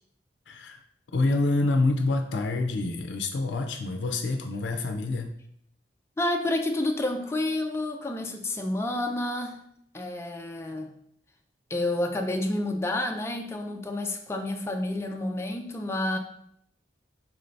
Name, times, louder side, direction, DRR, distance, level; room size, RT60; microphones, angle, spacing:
voice 1, 0.5-0.8 1.1-5.3, left 2 dB, 90° left, 5 dB, 0.4 m, -27 dB
voice 2, 6.2-9.6 9.9-10.9 11.7-16.2, left 1 dB, 15° left, 3 dB, 0.4 m, -29 dB
4.6 x 2.6 x 3.2 m, 0.69 s
head